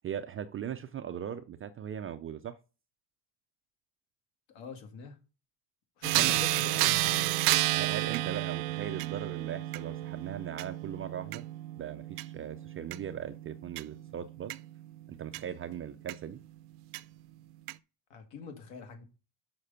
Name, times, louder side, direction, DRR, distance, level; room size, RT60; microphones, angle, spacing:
voice 1, 0.0-2.6 6.1-6.4 7.7-11.4 11.8-14.6 15.1-16.4, right 9 dB, 30° right, 0.3 m, -39 dB
voice 2, 4.5-5.2 6.0-7.3 18.1-19.0, left 5 dB, 65° left, 2.3 m, -44 dB
sound 1, 6.0-15.4 16.1-16.2 16.9-17.0 17.7-17.8, right 19 dB, 90° right, 0.6 m, -31 dB
6.6 x 5.8 x 5.5 m
cardioid pair, 150°, 48 cm